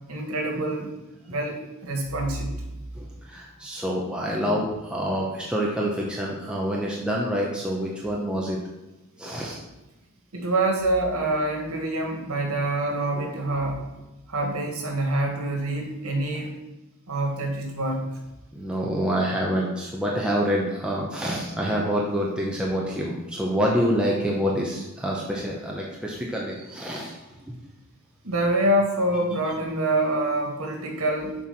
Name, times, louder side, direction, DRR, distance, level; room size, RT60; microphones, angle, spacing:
voice 1, 0.1-0.9 1.3-2.5 10.3-13.9 14.3-16.6 17.1-18.0 28.2-31.4, right 1 dB, 90° right, 2 dB, 1.9 m, -26 dB
voice 2, 2.9-8.6 9.2-9.6 18.5-27.2, equal, 5° right, -4 dB, 0.9 m, -27 dB
7.2 x 4.7 x 5.9 m, 1.0 s
head